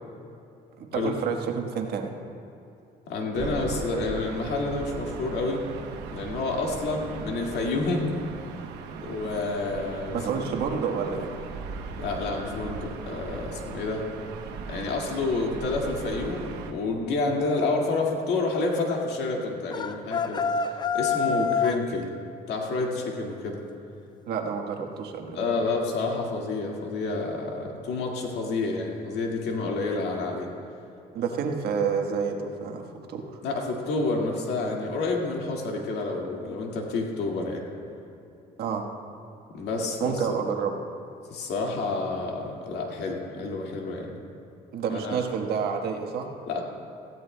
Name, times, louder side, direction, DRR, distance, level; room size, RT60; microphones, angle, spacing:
voice 1, 0.8-2.1 10.1-11.3 21.2-21.5 24.3-25.4 31.1-33.4 38.6-38.9 40.0-40.7 44.7-46.3, right 6 dB, 70° right, 3 dB, 1.4 m, -29 dB
voice 2, 3.1-5.7 6.1-8.1 9.0-10.5 12.0-14.0 14.7-22.1 22.5-23.6 25.3-30.5 33.4-37.7 39.5-40.4 41.3-44.1 44.9-45.2 46.5-46.6, left 3 dB, 75° left, 0 dB, 2.0 m, -29 dB
Gull seagull / Ocean, 3.3-16.7, right 5 dB, 90° right, 0.9 m, -38 dB
sound 1, 19.7-21.9, left 5 dB, 25° left, 0.5 m, -26 dB
17.5 x 15.0 x 2.2 m, 2.7 s
cardioid pair, 110°, 17 cm